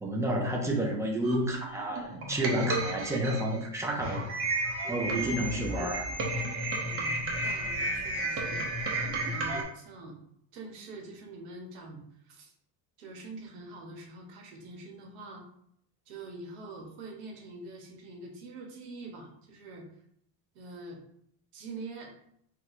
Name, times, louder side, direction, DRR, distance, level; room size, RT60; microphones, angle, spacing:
voice 1, 0.0-4.3 4.9-6.1, right 1 dB, 5° right, 0 dB, 0.3 m, -30 dB
sound 1, 1.2-9.6, right 2 dB, 30° right, 0.7 m, -32 dB
voice 2, 6.8-8.6 9.2-10.2 10.5-12.5 13.0-15.4 16.1-19.9 20.5-21.0 21.5-22.1, right 2 dB, 85° right, 1 dB, 1.2 m, -45 dB
2.9 x 2.2 x 4.0 m, 0.71 s
cardioid pair, 130°, 48 cm